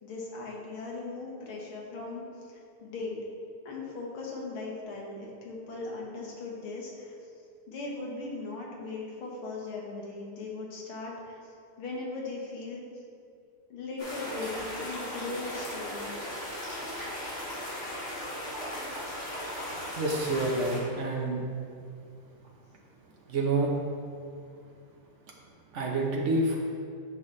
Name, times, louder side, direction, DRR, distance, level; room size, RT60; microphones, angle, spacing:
voice 1, 0.0-3.2 3.7-7.2 7.7-11.5 11.8-12.8 13.7-16.2, left 3 dB, 75° left, -2 dB, 2.1 m, -38 dB
sound 1, 14.0-20.8, left 1 dB, 30° left, 2.1 m, -37 dB
voice 2, 20.0-21.4 23.3-23.7 25.7-26.6, right 2 dB, 90° right, -1 dB, 0.6 m, -28 dB
9.1 x 5.7 x 3.1 m, 2.3 s
omnidirectional pair, 2.4 m